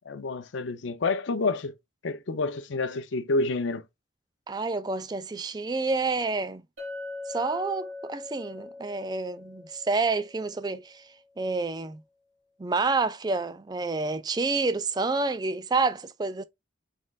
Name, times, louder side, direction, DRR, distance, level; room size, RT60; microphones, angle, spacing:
voice 1, 0.1-1.7 2.0-3.8, left 3 dB, 75° left, 0.6 m, -28 dB
voice 2, 4.5-6.6 7.3-11.0 11.4-12.0 12.6-16.4, right 3 dB, 20° right, 0.3 m, -28 dB
Chink clink, 6.8-11.0, left 3 dB, 75° right, 2.0 m, -41 dB
4.1 x 3.7 x 2.3 m
head